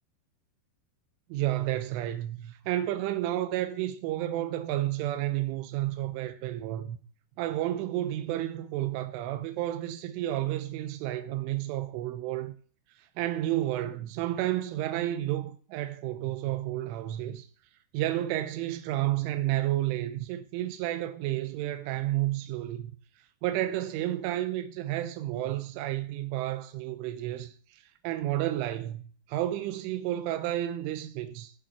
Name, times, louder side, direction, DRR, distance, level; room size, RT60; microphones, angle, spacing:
voice 1, 1.3-7.0 7.4-12.5 13.0-17.5 17.9-22.9 23.4-31.5, right 14 dB, 90° right, 3.3 m, -31 dB
15.0 x 7.0 x 7.4 m
omnidirectional pair, 5.6 m